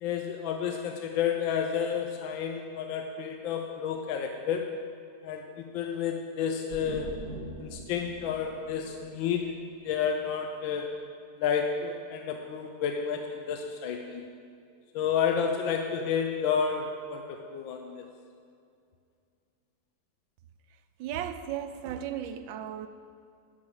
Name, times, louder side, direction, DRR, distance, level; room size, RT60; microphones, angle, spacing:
voice 1, 0.0-4.7 5.2-7.1 7.6-9.5 9.8-10.9 11.4-14.3 14.9-18.1, left 7 dB, 80° left, 1.5 m, -30 dB
sound 1, 6.7-10.3, right 2 dB, 60° right, 1.4 m, -43 dB
voice 2, 21.0-22.9, right 10 dB, 75° right, 1.3 m, -35 dB
12.0 x 6.2 x 7.9 m
omnidirectional pair, 2.2 m